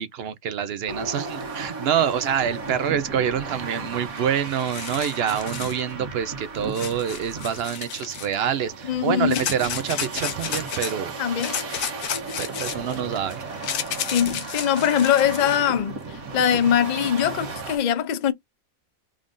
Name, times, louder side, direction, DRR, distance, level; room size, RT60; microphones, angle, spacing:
voice 1, 0.0-11.1 12.4-13.4, right 8 dB, 65° right, 0.6 m, -26 dB
sound 1, 0.9-17.8, right 4 dB, 80° right, 1.5 m, -35 dB
sound 2, 4.2-4.3 4.5-5.8 6.7-8.4 9.3-10.9 11.4-15.6, left 9 dB, 75° left, 1.1 m, -32 dB
voice 2, 8.8-9.5 11.2-11.6 14.0-16.0 16.3-18.3, left 9 dB, 55° left, 0.5 m, -22 dB
3.7 x 2.5 x 3.6 m
omnidirectional pair, 1.5 m